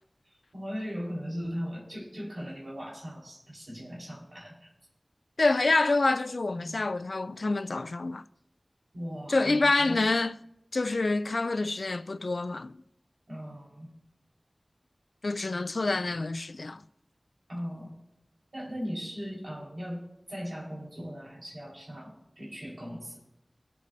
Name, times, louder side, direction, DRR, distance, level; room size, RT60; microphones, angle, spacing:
voice 1, 0.2-4.7 6.5-6.8 8.9-10.0 13.3-13.9 17.5-17.9 18.5-23.2, equal, 80° right, 4.6 m, -38 dB
voice 2, 5.4-8.2 9.3-10.4 10.7-12.7 15.2-16.8, left 3 dB, 85° left, 0.4 m, -27 dB
24.5 x 8.2 x 2.7 m
wide cardioid pair, 45°, 0 cm